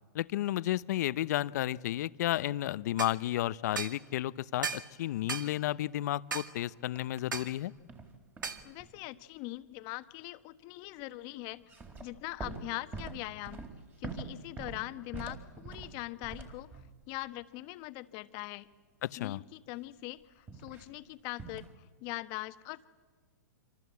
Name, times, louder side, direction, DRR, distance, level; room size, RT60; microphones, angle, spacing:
voice 1, 0.1-7.7 19.0-19.4, left 14 dB, 60° left, 17 dB, 0.8 m, -32 dB
sound 1, 3.0-3.2 3.8-4.0 4.6-4.9 5.3-5.5 6.3-6.5 7.3-7.5 8.4-8.6, right 5 dB, 90° right, 2.0 m, -36 dB
sound 2, 7.0-7.6 7.9-9.0 11.6-17.0 20.5-20.9 21.4-21.7, right 4 dB, 20° right, 3.9 m, -44 dB
voice 2, 8.6-11.6 12.0-13.6 14.0-18.7 19.2-22.9, left 20 dB, 40° left, 11 dB, 1.3 m, -42 dB
26.5 x 26.0 x 8.4 m, 1.4 s
hypercardioid pair, 120°, 10 cm